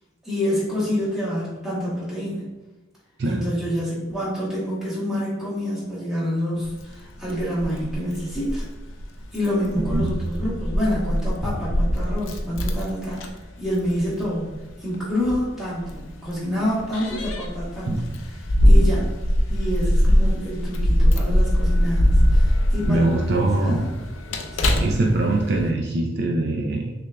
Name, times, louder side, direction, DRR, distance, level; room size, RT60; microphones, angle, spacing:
voice 1, 0.2-2.4 3.2-8.7 9.3-13.2 13.6-14.5 14.8-18.0 18.6-19.1 19.5-23.9 24.6-24.9, equal, ahead, -9 dB, 1.4 m, -27 dB
Keys jangling, 6.6-25.7, equal, 80° left, 0.5 m, -22 dB
voice 2, 9.8-10.2 17.9-18.2 22.9-24.0 24.8-26.9, right 2 dB, 55° right, 0 dB, 0.4 m, -23 dB
6.2 x 2.5 x 2.2 m, 1.1 s
head